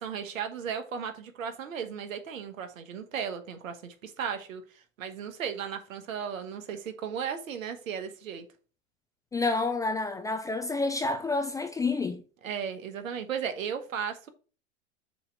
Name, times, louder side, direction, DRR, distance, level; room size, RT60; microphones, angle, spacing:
voice 1, 0.0-8.5 12.4-14.3, right 7 dB, 85° right, 1.3 m, -35 dB
voice 2, 9.3-12.2, left 3 dB, 10° left, 0.3 m, -29 dB
6.8 x 3.1 x 5.7 m
hypercardioid pair, 110°, 39 cm